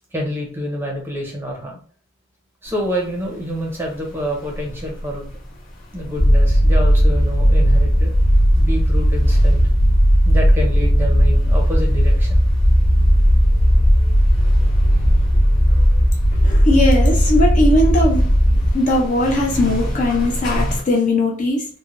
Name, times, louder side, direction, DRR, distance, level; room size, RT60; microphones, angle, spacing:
voice 1, 0.1-1.7 2.6-5.3 5.9-8.2 8.6-9.6 10.2-12.4, equal, 10° right, 0.6 m, -27 dB
sound 1, 2.7-20.8, equal, 60° left, 1.3 m, -32 dB
sound 2, 6.2-18.7, equal, 90° left, 0.7 m, -15 dB
voice 2, 16.4-18.3 18.7-21.7, left 1 dB, 35° left, 0.4 m, -19 dB
3.1 x 2.1 x 2.5 m
head